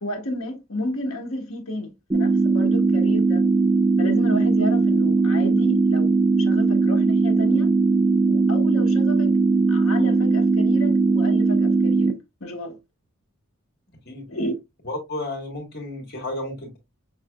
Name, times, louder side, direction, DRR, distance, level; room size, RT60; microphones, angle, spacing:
voice 1, 0.0-3.5 4.0-7.7 8.3-9.3 9.7-12.1 12.4-12.8 14.3-14.6, left 1 dB, 70° left, 1.3 m, -31 dB
sound 1, 2.1-12.1, right 3 dB, 15° right, 0.8 m, -19 dB
voice 2, 14.8-16.8, left 1 dB, 50° left, 2.1 m, -32 dB
6.3 x 3.3 x 2.2 m
head